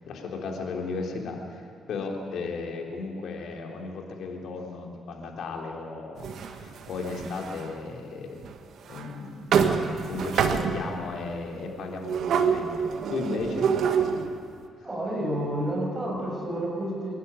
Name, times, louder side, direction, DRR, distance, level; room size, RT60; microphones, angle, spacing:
voice 1, 0.0-8.4 8.9-9.5 9.8-13.7, left 3 dB, 70° left, 1 dB, 3.7 m, -35 dB
sound 1, 6.2-7.7 8.4-8.5 8.9-9.1 9.5-11.0 12.0-14.4, right 6 dB, 70° right, 1.5 m, -26 dB
voice 2, 14.8-17.1, right 1 dB, 25° right, -2 dB, 6.3 m, -30 dB
27.0 x 12.0 x 10.0 m, 2.5 s
cardioid pair, 90°, 0 cm